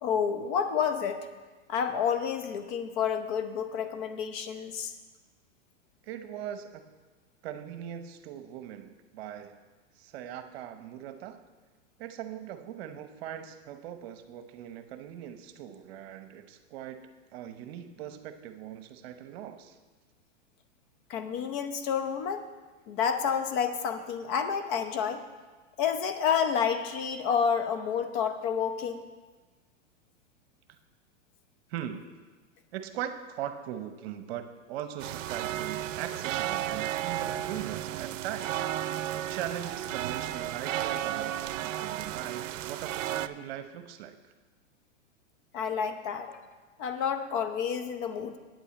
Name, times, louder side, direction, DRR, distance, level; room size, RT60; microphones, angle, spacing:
voice 1, 0.0-1.3 1.7-4.9 21.1-22.4 22.9-25.2 25.8-29.0 45.5-46.4 46.8-48.4, left 7 dB, 40° left, 8 dB, 0.8 m, -29 dB
voice 2, 6.0-6.9 7.4-9.6 10.0-11.4 12.0-19.8 30.7-30.8 31.7-32.1 32.7-44.2, right 10 dB, 55° right, 9 dB, 0.9 m, -40 dB
sound 1, 35.0-43.3, right 12 dB, 85° right, 0.5 m, -33 dB
9.0 x 5.5 x 8.2 m, 1.3 s
hypercardioid pair, 135°, 37 cm